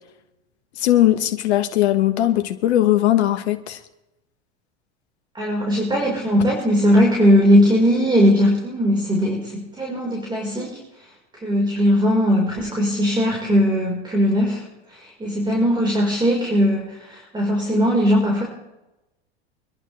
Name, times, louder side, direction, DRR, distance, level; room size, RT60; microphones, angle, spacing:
voice 1, 0.8-3.8, left 13 dB, 75° left, 7 dB, 1.5 m, -19 dB
voice 2, 5.3-10.8 11.4-14.6 14.9-18.4, equal, 15° right, -1 dB, 4.8 m, -19 dB
26.0 x 11.0 x 3.4 m, 0.95 s
hypercardioid pair, 100°, 33 cm